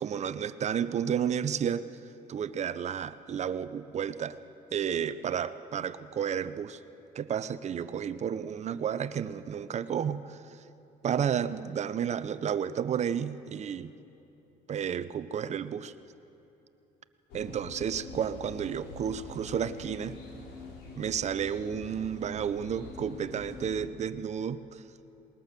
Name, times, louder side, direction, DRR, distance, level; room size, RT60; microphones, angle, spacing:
voice 1, 0.0-1.8 2.3-4.4 4.7-6.8 7.1-10.4 11.0-14.0 14.7-15.9 17.3-20.2 21.0-24.8, right 8 dB, 40° right, 14 dB, 0.7 m, -32 dB
sound 1, 17.3-23.8, left 2 dB, 85° left, 4.2 m, -45 dB
20.0 x 20.0 x 6.8 m, 2.9 s
cardioid pair, 110°, 17 cm